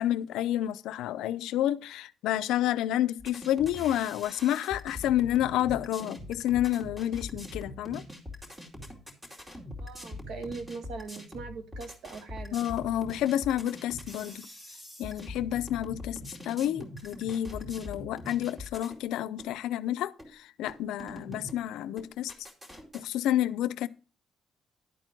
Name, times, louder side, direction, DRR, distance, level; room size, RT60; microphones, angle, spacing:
voice 1, 0.0-8.0 12.5-14.5 15.0-22.3 22.9-23.9, left 12 dB, 90° left, 0.5 m, -29 dB
sound 1, 3.2-19.0 19.4-19.5 20.2-20.3 20.7-21.6 22.0-23.0, left 1 dB, 20° right, 2.5 m, -43 dB
voice 2, 9.8-12.6, right 4 dB, 80° right, 1.4 m, -41 dB
11.0 x 4.5 x 6.0 m
cardioid pair, 90°, 0 cm